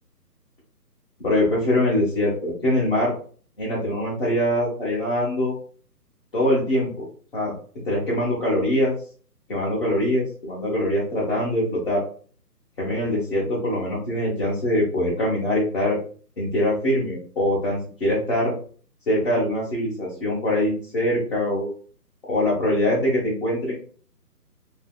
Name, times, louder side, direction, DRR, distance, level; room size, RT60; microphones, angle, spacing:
voice 1, 1.2-3.1 3.6-5.5 6.3-7.0 7.3-7.5 7.8-8.9 9.5-12.0 12.8-16.0 16.4-18.5 19.1-21.7 22.3-23.7, left 1 dB, 35° left, -7 dB, 1.1 m, -23 dB
3.0 x 2.7 x 2.2 m, 0.43 s
hypercardioid pair, 165°, 49 cm